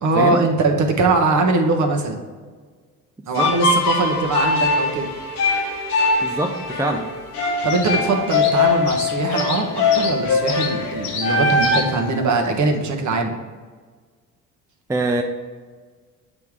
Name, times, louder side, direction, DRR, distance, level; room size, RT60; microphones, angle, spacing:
voice 1, 0.0-2.2 3.3-5.1 7.6-13.3, right 3 dB, 40° right, 3 dB, 1.2 m, -21 dB
sound 1, 3.4-11.8, left 3 dB, 85° left, 1.0 m, -21 dB
sound 2, 3.4-12.8, left 5 dB, 70° left, 1.3 m, -34 dB
voice 2, 6.2-7.1 14.9-15.2, right 2 dB, 5° right, 3 dB, 0.5 m, -23 dB
8.4 x 3.5 x 4.7 m, 1.5 s
figure-of-eight pair, 55°, 44 cm